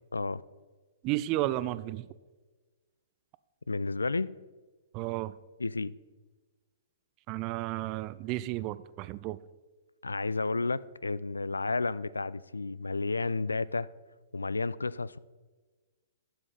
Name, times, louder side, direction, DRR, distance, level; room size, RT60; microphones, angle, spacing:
voice 1, 0.1-0.4 3.7-4.3 5.6-5.9 10.0-13.9 14.3-15.2, left 3 dB, 85° left, 0.3 m, -31 dB
voice 2, 1.0-2.1 4.9-5.3 7.3-9.4, right 16 dB, 35° right, 0.4 m, -32 dB
12.0 x 7.5 x 4.2 m
figure-of-eight pair, 115°, 0 cm